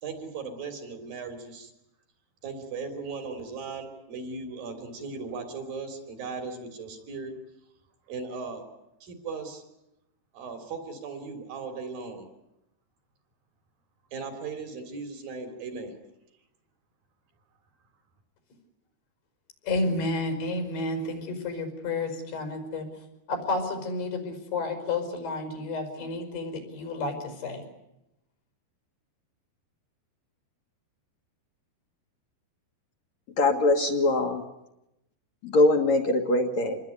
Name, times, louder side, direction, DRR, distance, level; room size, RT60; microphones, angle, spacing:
voice 1, 0.0-1.7 2.4-7.3 8.1-8.6 9.0-9.6 10.3-12.3 14.1-15.9, right 4 dB, 60° right, 6 dB, 5.2 m, -37 dB
voice 2, 19.7-22.9 23.3-27.6, left 2 dB, 85° left, 6 dB, 7.2 m, -31 dB
voice 3, 33.4-34.4 35.4-36.8, left 2 dB, 55° left, 3 dB, 2.5 m, -22 dB
27.5 x 20.5 x 9.5 m, 0.89 s
omnidirectional pair, 4.6 m